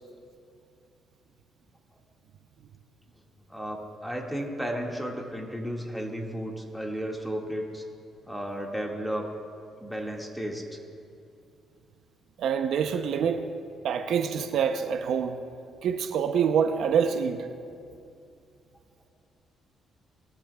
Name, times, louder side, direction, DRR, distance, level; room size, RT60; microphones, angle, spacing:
voice 1, 3.5-7.8 8.3-9.2 9.8-10.8, equal, ahead, -1 dB, 1.9 m, -33 dB
voice 2, 12.4-13.4 13.8-15.4 15.8-17.5, right 7 dB, 75° right, 7 dB, 0.6 m, -26 dB
19.5 x 13.5 x 2.3 m, 2.5 s
cardioid pair, 90°, 0 cm